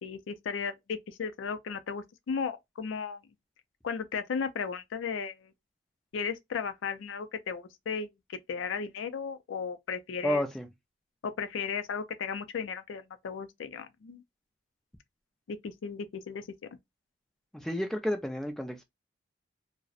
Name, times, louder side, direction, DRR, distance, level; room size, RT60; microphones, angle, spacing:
voice 1, 0.0-3.2 3.8-5.5 6.1-10.4 11.2-14.2 15.5-16.5, left 6 dB, 80° left, 0.4 m, -35 dB
voice 2, 10.2-10.7 17.5-18.8, equal, ahead, 0.3 m, -31 dB
2.5 x 2.0 x 2.4 m
head